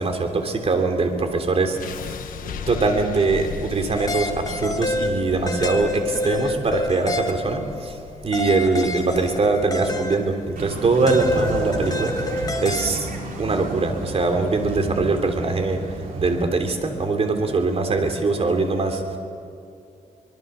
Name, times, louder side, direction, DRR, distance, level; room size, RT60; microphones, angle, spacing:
voice 1, 0.0-2.1 2.5-8.0 8.2-12.1 12.6-13.1 13.4-19.2, right 3 dB, 45° right, 5 dB, 3.3 m, -22 dB
sound 1, 1.8-13.8, left 7 dB, 85° left, 1.3 m, -39 dB
sound 2, 3.9-7.9 8.3-10.4 11.1-13.2, left 2 dB, 25° left, 1.9 m, -28 dB
sound 3, 10.6-16.4, right 2 dB, 85° right, 3.4 m, -32 dB
24.5 x 21.0 x 7.0 m, 2.6 s
cardioid pair, 90°, 14 cm